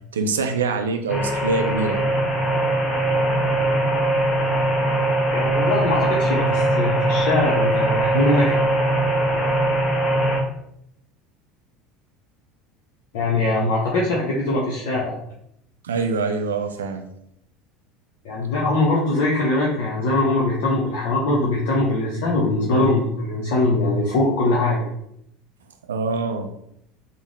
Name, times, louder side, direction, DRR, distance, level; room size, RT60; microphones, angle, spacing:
voice 1, 0.1-2.0 15.8-17.0 25.9-26.5, right 4 dB, 75° right, 6 dB, 0.3 m, -24 dB
sound 1, 1.1-10.4, right 1 dB, 20° left, 0.8 m, -21 dB
voice 2, 5.3-8.5 13.1-15.1 18.2-24.9, left 2 dB, 60° left, -4 dB, 0.6 m, -22 dB
3.6 x 2.0 x 3.2 m, 0.75 s
figure-of-eight pair, 70°, 0 cm